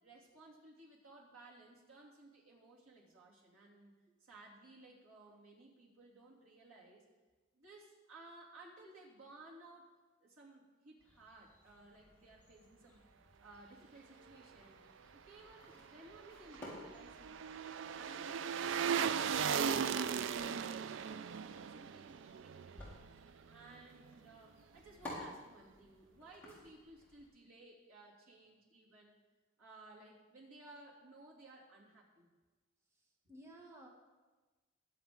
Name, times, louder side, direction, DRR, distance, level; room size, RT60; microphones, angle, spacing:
voice 1, 0.0-4.0 4.2-7.0 7.5-9.9 10.2-13.0 13.4-14.8 15.1-17.5 17.9-23.0 23.5-29.1 29.6-32.3, right 2 dB, 85° right, -3 dB, 3.0 m, -58 dB
sound 1, 11.0-27.3, left 1 dB, 10° left, 4.1 m, -56 dB
sound 2, 16.1-23.3 23.6-23.7, right 7 dB, 60° right, 0.3 m, -37 dB
voice 2, 32.9-33.9, right 1 dB, 15° right, -1 dB, 1.2 m, -56 dB
21.0 x 7.9 x 3.8 m, 1.3 s
head